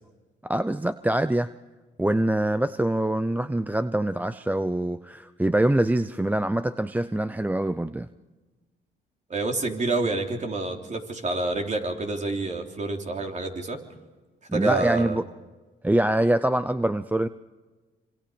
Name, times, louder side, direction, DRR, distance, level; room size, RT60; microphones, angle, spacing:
voice 1, 0.4-1.5 2.0-8.1 14.5-15.2 15.8-17.3, right 1 dB, 10° right, 13 dB, 0.6 m, -24 dB
voice 2, 9.3-13.8 14.5-15.2, right 3 dB, 35° right, 3 dB, 3.5 m, -28 dB
26.0 x 26.0 x 5.2 m, 1.2 s
cardioid pair, 90°, 20 cm